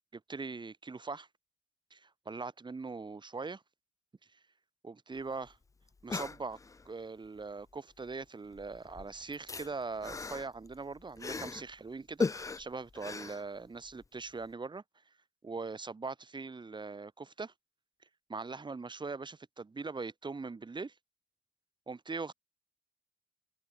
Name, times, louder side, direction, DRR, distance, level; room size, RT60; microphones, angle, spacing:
voice 1, 0.3-1.3 1.9-3.6 4.8-5.6 6.0-6.6 6.8-14.8 15.4-17.5 18.3-20.9 21.9-22.3, right 4 dB, 25° right, 1.2 m, -41 dB
sound 1, 5.2-5.3 5.5-5.6 5.9-6.9 8.0-8.2 8.5-11.7 12.2-14.0 14.4-14.5, left 4 dB, 15° left, 0.4 m, -38 dB
cardioid pair, 90°, 20 cm